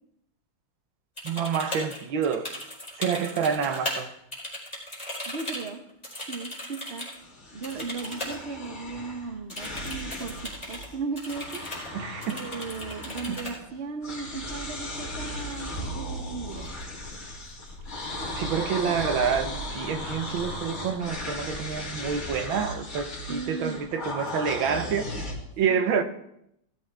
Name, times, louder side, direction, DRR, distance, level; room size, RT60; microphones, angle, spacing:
sound 1, 1.2-4.0 4.3-7.2 7.6-8.4 8.7-8.8 9.5-10.9 11.2-11.9 12.2-13.5 15.2-15.4 15.7-16.2 16.5-17.2, left 1 dB, 20° left, 4.2 m, -37 dB
voice 1, 1.2-2.5 3.0-4.1 11.9-12.4 13.3-13.4 18.3-26.0, right 7 dB, 80° right, 1.6 m, -28 dB
voice 2, 5.3-5.8 6.3-7.1 7.5-11.6 12.3-16.7 23.3-23.8 25.7-26.0, right 4 dB, 45° right, 1.0 m, -36 dB
sound 2, 7.2-11.0 11.2-13.8 14.0-25.3, left 1 dB, 45° left, 2.8 m, -36 dB
sound 3, 16.2-22.5, left 2 dB, 10° right, 4.3 m, -46 dB
16.5 x 13.5 x 3.4 m
omnidirectional pair, 2.2 m